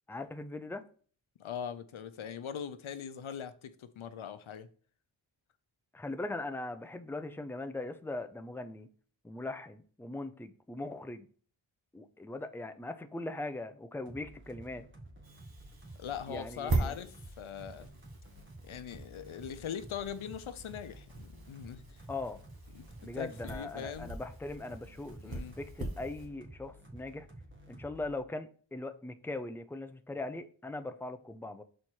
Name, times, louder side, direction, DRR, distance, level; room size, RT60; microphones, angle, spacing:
voice 1, 0.1-0.9 5.9-8.9 9.2-11.3 11.9-14.8 16.3-17.0 22.1-22.4 23.0-27.3 27.7-31.6, left 2 dB, 5° left, 0.6 m, -40 dB
voice 2, 1.4-4.7 16.0-17.9 18.7-21.8 22.7-22.9 23.1-24.1 25.2-25.6, left 8 dB, 90° left, 0.7 m, -41 dB
sound 1, 14.1-28.2, right 1 dB, 25° right, 1.7 m, -52 dB
sound 2, 15.2-26.3, right 2 dB, 50° right, 1.7 m, -41 dB
6.4 x 4.2 x 4.5 m
wide cardioid pair, 75°, 47 cm